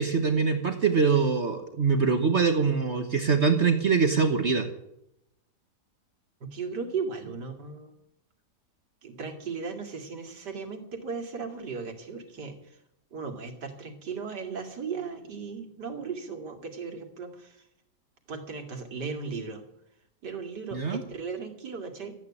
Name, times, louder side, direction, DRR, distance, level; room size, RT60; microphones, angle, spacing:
voice 1, 0.0-4.7 20.7-21.0, right 5 dB, 45° right, 6 dB, 1.4 m, -23 dB
voice 2, 6.4-7.9 9.0-12.8 13.1-17.6 18.3-19.6 20.2-22.1, right 5 dB, 90° right, 4 dB, 2.9 m, -36 dB
14.0 x 9.4 x 8.5 m, 0.80 s
omnidirectional pair, 1.8 m